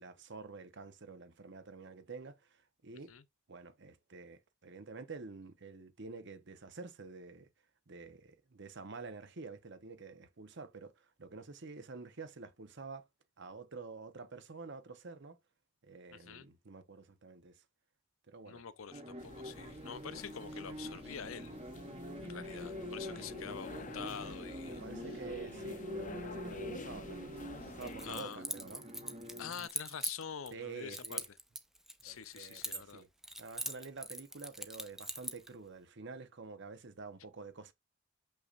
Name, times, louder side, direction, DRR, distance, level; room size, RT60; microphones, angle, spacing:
voice 1, 0.0-3.1 3.5-7.5 7.9-13.0 13.4-15.4 15.8-17.6 18.3-18.6 24.6-28.8 30.5-31.2 32.0-33.1 33.4-37.7, right 4 dB, 60° right, 0.9 m, -49 dB
voice 2, 16.1-16.5 18.5-21.6 22.2-24.8 25.1-25.2 28.0-28.4 29.4-31.4 32.0-33.0, left 7 dB, 80° left, 0.7 m, -46 dB
sound 1, 18.9-29.7, equal, 30° right, 1.2 m, -45 dB
sound 2, 19.2-28.2, left 3 dB, 40° left, 0.7 m, -49 dB
Keys jangling, 27.8-30.5 30.9-33.0 33.2-35.5, right 1 dB, ahead, 0.6 m, -41 dB
6.6 x 5.7 x 2.5 m
head